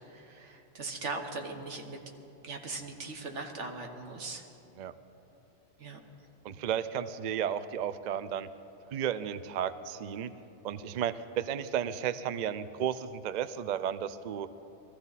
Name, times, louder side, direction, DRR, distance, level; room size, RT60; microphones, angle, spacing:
voice 1, 0.1-2.0 2.4-4.5 5.8-6.0, right 3 dB, 85° right, 3 dB, 1.6 m, -39 dB
voice 2, 6.4-8.5 8.9-10.3 10.6-14.5, right 9 dB, 55° right, 14 dB, 0.5 m, -33 dB
21.5 x 14.0 x 4.1 m, 2.9 s
omnidirectional pair, 1.2 m